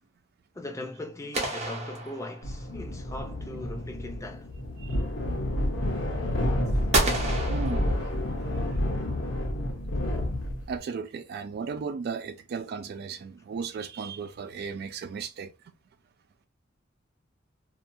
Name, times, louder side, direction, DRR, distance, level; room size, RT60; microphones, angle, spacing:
voice 1, 0.5-4.5, left 1 dB, 15° left, 0.5 m, -39 dB
sound 1, 1.3-2.8 6.9-8.5, right 2 dB, 35° right, 0.7 m, -30 dB
sound 2, 2.4-10.8, left 1 dB, 80° left, 0.8 m, -29 dB
voice 2, 7.4-8.1 10.7-15.5, right 5 dB, 50° right, 0.3 m, -35 dB
2.6 x 2.2 x 2.6 m
head